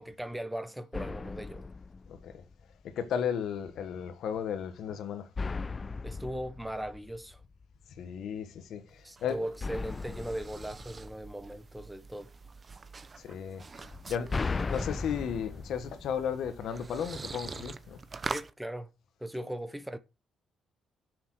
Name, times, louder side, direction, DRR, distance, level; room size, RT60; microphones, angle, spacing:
voice 1, 0.0-1.7 6.0-7.4 9.0-12.3 18.2-18.9 19.2-20.0, right 1 dB, 5° right, 1.2 m, -38 dB
sound 1, 0.9-2.8 5.4-7.8 9.6-11.9 13.8-16.9, left 4 dB, 30° left, 0.4 m, -38 dB
voice 2, 2.1-2.4 2.8-5.3 8.0-9.5 13.2-18.0, left 8 dB, 75° left, 1.4 m, -35 dB
sound 2, 8.9-18.5, right 4 dB, 30° right, 0.9 m, -45 dB
7.8 x 6.9 x 6.3 m
cardioid pair, 90°, 0 cm